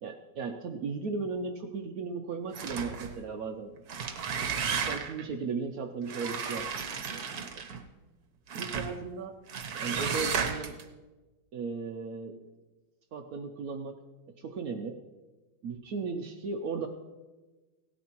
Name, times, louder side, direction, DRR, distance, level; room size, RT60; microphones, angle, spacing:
voice 1, 0.0-3.7 4.7-7.6 8.5-9.3 9.7-10.8 11.5-12.4 13.1-14.0 14.4-15.0 15.6-16.9, right 4 dB, 75° right, 5 dB, 0.8 m, -36 dB
sound 1, 2.5-3.2 3.8-5.2 6.1-7.8 8.5-8.9 9.5-10.8, right 6 dB, 55° right, 1.2 m, -33 dB
17.5 x 13.0 x 2.9 m, 1.2 s
omnidirectional pair, 2.4 m